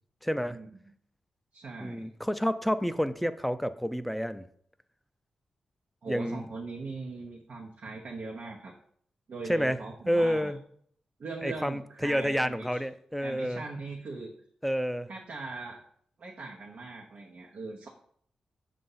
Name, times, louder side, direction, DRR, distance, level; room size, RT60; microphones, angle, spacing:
voice 1, 0.2-0.6 1.8-4.5 6.1-6.4 9.5-9.8 10.1-10.6 11.4-13.6 14.6-15.1, equal, 5° left, 11 dB, 0.4 m, -29 dB
voice 2, 1.5-2.1 6.0-8.7 9.3-10.5 11.2-12.8 13.2-14.3 15.1-15.8 16.2-17.9, right 3 dB, 70° right, -2 dB, 0.9 m, -40 dB
6.8 x 2.6 x 5.6 m, 0.63 s
cardioid pair, 50°, 2 cm